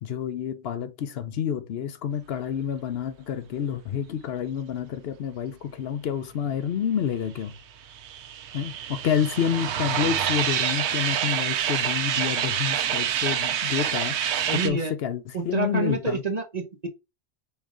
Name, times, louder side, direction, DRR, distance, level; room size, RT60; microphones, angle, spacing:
voice 1, 0.0-7.6 8.5-16.2, left 8 dB, 70° left, 0.8 m, -29 dB
sound 1, 7.5-14.7, right 9 dB, 90° right, 0.9 m, -27 dB
voice 2, 14.5-14.9 15.3-16.9, right 4 dB, 40° right, 0.9 m, -28 dB
5.3 x 2.6 x 3.7 m
omnidirectional pair, 1.1 m